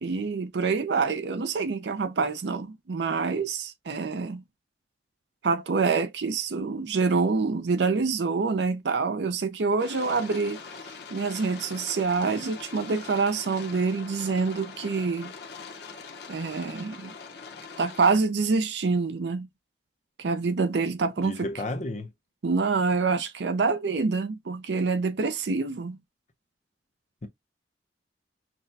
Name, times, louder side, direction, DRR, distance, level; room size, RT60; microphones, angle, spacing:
voice 1, 0.0-4.4 5.4-10.6 11.1-15.3 16.3-17.1 17.8-19.5 20.2-21.5 22.4-26.0, right 4 dB, 65° right, 0.5 m, -26 dB
sound 1, 9.8-18.1, left 5 dB, 65° left, 0.9 m, -43 dB
voice 2, 21.2-22.1 27.2-27.3, left 2 dB, 40° left, 0.6 m, -32 dB
5.9 x 2.2 x 2.6 m
head